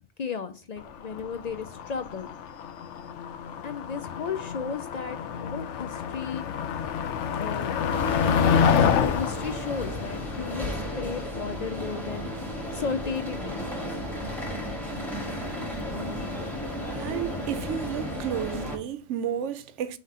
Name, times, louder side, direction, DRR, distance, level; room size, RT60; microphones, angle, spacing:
voice 1, 0.2-2.3 3.6-6.4 7.3-7.7 8.2-12.3 12.7-13.6, left 5 dB, 60° left, 0.4 m, -34 dB
Motor vehicle (road), 0.8-11.2, left 7 dB, 90° left, 0.9 m, -28 dB
sound 1, 7.9-18.8, left 1 dB, ahead, 1.4 m, -34 dB
voice 2, 16.9-20.0, right 10 dB, 85° right, 0.9 m, -32 dB
5.7 x 3.1 x 5.4 m
omnidirectional pair, 1.2 m